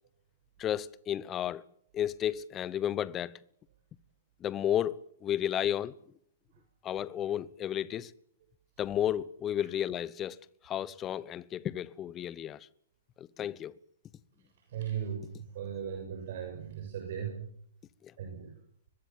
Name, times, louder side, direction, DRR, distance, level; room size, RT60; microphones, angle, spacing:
voice 1, 0.6-1.6 1.9-3.4 4.4-5.9 6.8-8.1 8.8-10.4 10.6-12.7 13.2-13.8, left 10 dB, 25° left, 1.0 m, -32 dB
voice 2, 14.7-17.5 18.2-18.5, right 8 dB, 55° right, 6.8 m, -37 dB
24.0 x 22.5 x 7.4 m
figure-of-eight pair, 110°, 0 cm